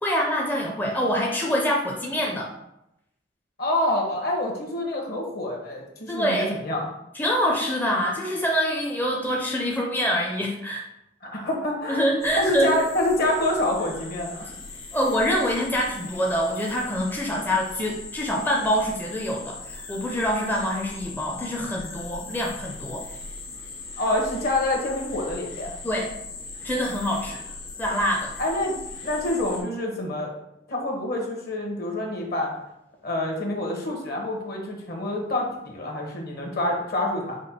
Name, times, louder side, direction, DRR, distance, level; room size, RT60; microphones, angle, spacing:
voice 1, 0.0-2.5 6.1-6.6 7.1-10.8 11.9-12.8 14.9-23.0 25.8-26.1 26.6-27.4 27.8-28.3, equal, 10° left, -2 dB, 0.4 m, -25 dB
voice 2, 3.6-6.9 11.2-12.0 12.3-14.5 24.0-25.7 28.4-30.3 30.7-32.6 33.0-37.4, left 1 dB, 55° left, 0 dB, 1.0 m, -27 dB
sound 1, 12.2-29.6, left 3 dB, 85° left, 1.0 m, -39 dB
5.0 x 2.2 x 4.2 m, 0.84 s
head